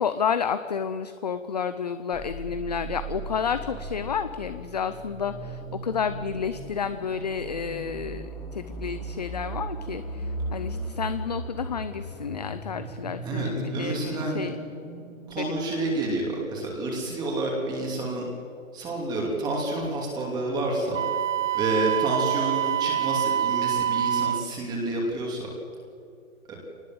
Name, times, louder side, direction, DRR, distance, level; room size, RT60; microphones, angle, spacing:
voice 1, 0.0-8.2 8.5-14.6 15.4-15.5, left 6 dB, 30° left, 11 dB, 0.6 m, -30 dB
sound 1, 2.1-15.9, right 2 dB, 5° left, 2.8 m, -37 dB
voice 2, 13.2-14.5 15.3-18.3 18.7-21.0 21.5-25.5 26.5-26.6, right 2 dB, 10° right, -1 dB, 2.8 m, -29 dB
Wind instrument woodwind instrument, 20.9-24.5, right 11 dB, 65° right, 0.5 m, -26 dB
23.5 x 19.5 x 7.7 m, 2.4 s
hypercardioid pair, 165°, 41 cm